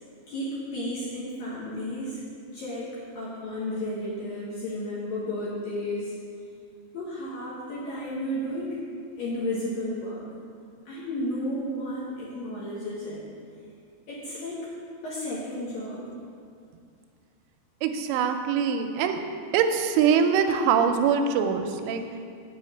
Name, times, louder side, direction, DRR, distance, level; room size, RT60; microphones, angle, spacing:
voice 1, 0.3-2.2 2.5-6.1 6.9-8.8 9.2-10.2 10.9-13.2 14.1-14.6 15.0-16.0, left 1 dB, 65° left, -7 dB, 2.4 m, -33 dB
voice 2, 17.8-19.2 19.5-22.0, right 7 dB, 85° right, 6 dB, 3.0 m, -23 dB
7.8 x 5.7 x 7.7 m, 2.3 s
omnidirectional pair, 5.6 m